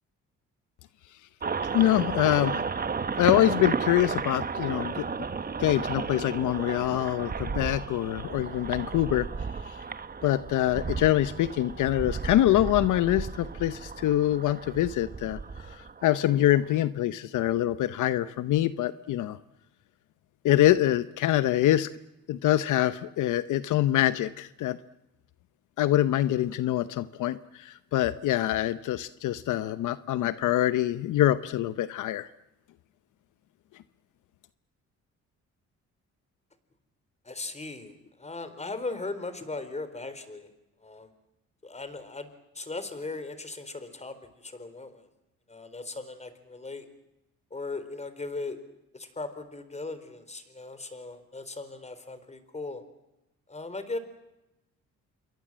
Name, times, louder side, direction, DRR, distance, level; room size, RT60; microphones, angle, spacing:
sound 1, 1.4-16.8, right 5 dB, 30° right, 1.4 m, -33 dB
voice 1, 1.7-2.7 3.2-5.0 5.6-9.3 9.7-9.8 10.2-15.4 15.7-19.4 20.4-21.9 22.3-24.8 25.8-32.3, left 13 dB, 80° left, 14 dB, 0.9 m, -25 dB
voice 2, 37.2-40.5 40.8-41.1 41.6-42.3 42.5-45.1 45.5-46.9 47.5-48.6 48.9-52.8 53.5-54.0, left 3 dB, 20° left, 11 dB, 4.2 m, -38 dB
27.5 x 22.5 x 7.5 m, 0.94 s
cardioid pair, 90°, 30 cm